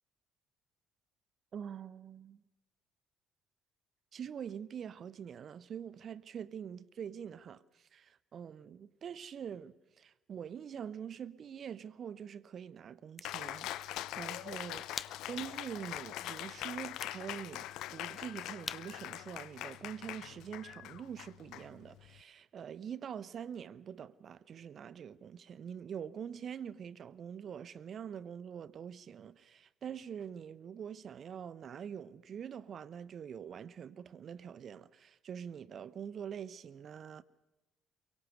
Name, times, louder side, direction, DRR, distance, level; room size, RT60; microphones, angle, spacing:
voice 1, 1.5-2.4 4.1-37.2, right 8 dB, 45° right, 0.9 m, -45 dB
sound 1, 12.9-20.3, left 3 dB, 25° left, 0.9 m, -51 dB
Cheering, 13.2-22.2, left 14 dB, 60° left, 0.8 m, -43 dB
23.5 x 22.5 x 6.7 m
figure-of-eight pair, 50°, 0 cm